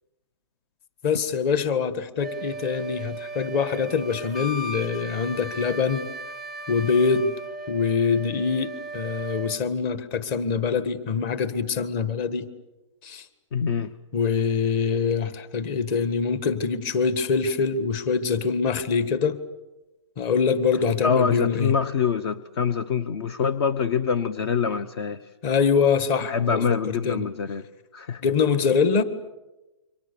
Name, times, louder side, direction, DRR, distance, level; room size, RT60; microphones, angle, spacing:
voice 1, 1.0-6.1 6.7-7.3 7.7-12.5 13.0-13.2 14.1-19.4 20.2-21.7 25.4-26.6 27.0-27.3 28.2-29.0, left 5 dB, 35° left, 13 dB, 1.7 m, -24 dB
Wind instrument woodwind instrument, 2.2-9.6, right 2 dB, ahead, 0.8 m, -36 dB
voice 2, 13.5-13.9 21.0-25.2 26.2-27.6 27.9-28.2, left 6 dB, 55° left, 15 dB, 1.0 m, -25 dB
29.0 x 24.5 x 7.0 m, 1.0 s
hypercardioid pair, 140°, 16 cm